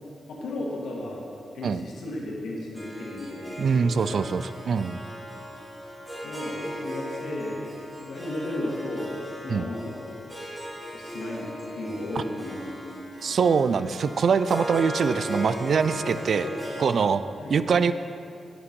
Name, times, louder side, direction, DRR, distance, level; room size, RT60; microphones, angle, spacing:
voice 1, 0.3-1.3 1.5-4.3 6.2-7.6 8.0-10.2 10.9-11.5 11.7-13.4 16.2-16.5 17.4-17.6, left 1 dB, 90° left, -3 dB, 1.9 m, -34 dB
Harp, 2.7-16.8, equal, 15° right, 2.3 m, -38 dB
voice 2, 3.6-5.0 9.5-9.7 13.2-16.5 16.8-17.2 17.5-17.9, right 6 dB, 65° right, 13 dB, 0.3 m, -23 dB
9.6 x 7.0 x 5.3 m, 2.5 s
cardioid pair, 95°, 0 cm